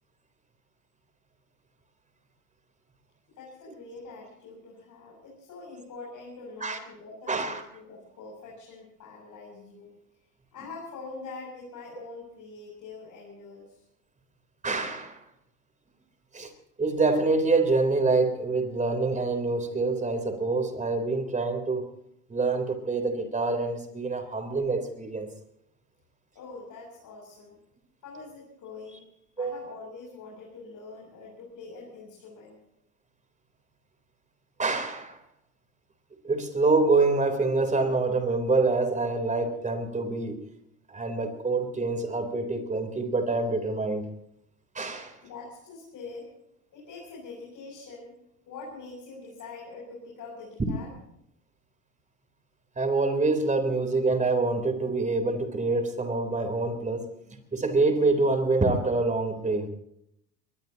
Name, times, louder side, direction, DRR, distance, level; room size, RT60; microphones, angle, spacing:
voice 1, 3.3-9.9 10.5-13.8 26.3-27.6 28.0-29.0 29.4-32.6 45.2-46.3 46.7-48.1 48.5-50.9, left 3 dB, 40° left, -3 dB, 7.6 m, -44 dB
voice 2, 7.3-7.6 14.6-15.2 16.3-16.5 16.8-21.9 22.3-25.3 29.4-29.7 34.6-35.2 36.2-40.4 40.9-44.1 44.7-45.2 52.8-57.1 57.5-59.7, right 3 dB, 15° right, 7 dB, 3.7 m, -26 dB
23.0 x 21.0 x 2.9 m, 0.76 s
hypercardioid pair, 90°, 47 cm